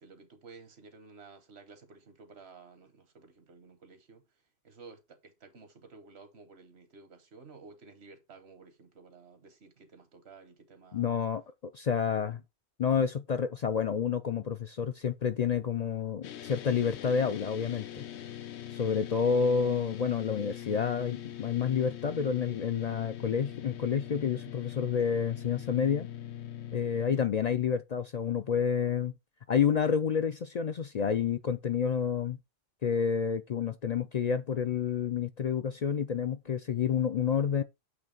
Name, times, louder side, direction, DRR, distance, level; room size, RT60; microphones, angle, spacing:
voice 1, 0.0-11.1 12.0-12.4, right 4 dB, 75° right, 1.4 m, -54 dB
voice 2, 10.9-12.4 12.8-18.0 18.7-26.1 26.7-29.1 29.5-32.4 32.8-37.6, left 7 dB, 55° left, 0.5 m, -29 dB
sound 1, 16.2-27.2, left 11 dB, 85° left, 1.0 m, -42 dB
8.0 x 3.2 x 5.2 m
omnidirectional pair, 1.1 m